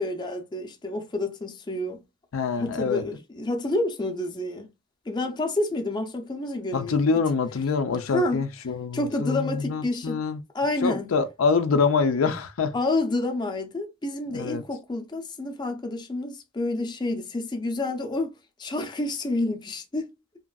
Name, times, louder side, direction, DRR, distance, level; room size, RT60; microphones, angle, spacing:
voice 1, 0.0-2.0 2.6-4.7 5.1-7.0 8.0-8.5 8.9-10.2 10.5-11.1 12.7-20.1, left 2 dB, 20° left, 0.5 m, -29 dB
voice 2, 2.3-3.0 6.7-10.4 10.8-12.8 14.3-14.6, left 5 dB, 85° left, 0.4 m, -25 dB
2.9 x 2.5 x 2.3 m
head